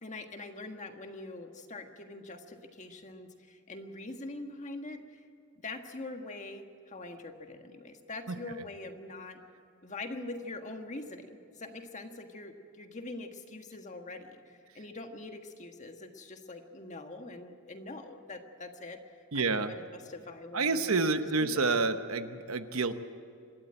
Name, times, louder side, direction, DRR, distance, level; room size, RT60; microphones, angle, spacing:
voice 1, 0.0-5.2 5.6-9.4 9.8-21.1 21.4-21.7, left 2 dB, 35° left, 5 dB, 1.6 m, -43 dB
voice 2, 19.3-19.7 20.5-23.0, right 3 dB, 75° right, 9 dB, 1.0 m, -28 dB
27.0 x 12.5 x 8.9 m, 2.4 s
head